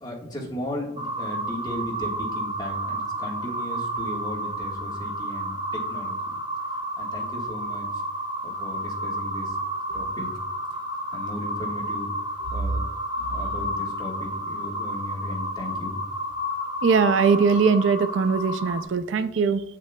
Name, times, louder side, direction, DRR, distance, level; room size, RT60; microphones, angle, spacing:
voice 1, 0.0-6.3 7.0-8.0 8.4-9.6 9.9-10.3 11.1-12.1 12.5-12.8 13.3-16.0, left 1 dB, 20° left, -3 dB, 1.4 m, -36 dB
sound 1, 1.0-18.8, right 1 dB, 25° right, 0.6 m, -31 dB
voice 2, 16.8-19.6, right 5 dB, 80° right, 12 dB, 0.4 m, -21 dB
8.2 x 7.5 x 2.2 m, 0.84 s
head